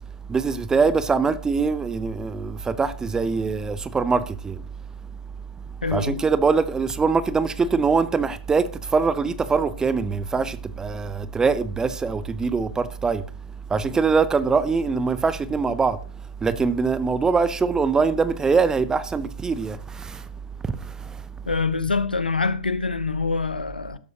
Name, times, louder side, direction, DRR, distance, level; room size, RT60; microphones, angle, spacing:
voice 1, 0.3-4.6 5.9-13.2 13.7-16.0 16.4-20.3 20.6-21.3, right 5 dB, 15° right, 0.7 m, -23 dB
voice 2, 5.8-6.2 21.5-24.0, left 4 dB, 90° left, 0.9 m, -25 dB
12.5 x 12.0 x 2.9 m
figure-of-eight pair, 110°, 5 cm